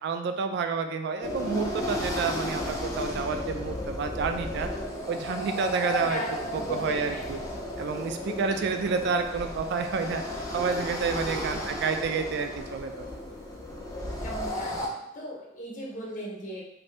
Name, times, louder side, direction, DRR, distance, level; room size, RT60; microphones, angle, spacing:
voice 1, 0.0-4.7 5.1-6.2 6.5-7.4 7.8-10.2 10.5-13.0, right 5 dB, 60° right, 7 dB, 0.3 m, -29 dB
sound 1, 1.2-14.9, left 1 dB, 15° left, 0.4 m, -34 dB
voice 2, 6.0-7.3 8.3-8.9 11.3-11.8 14.2-14.8 15.1-16.6, equal, 40° left, -3 dB, 0.8 m, -38 dB
2.6 x 2.6 x 3.2 m, 0.85 s
head